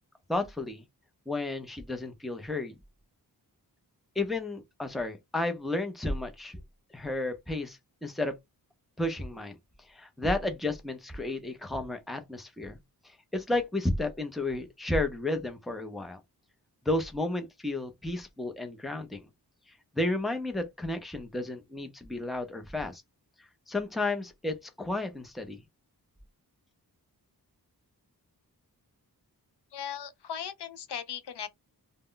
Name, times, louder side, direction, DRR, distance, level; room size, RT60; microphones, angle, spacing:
voice 1, 0.3-0.8 1.3-2.7 4.2-6.6 6.9-8.3 9.0-9.6 9.9-12.8 13.3-16.2 16.9-19.2 20.0-23.0 23.7-25.6, left 2 dB, ahead, 0.5 m, -32 dB
voice 2, 29.7-31.5, left 8 dB, 80° left, 0.6 m, -38 dB
2.1 x 2.0 x 3.7 m
wide cardioid pair, 120°, 39 cm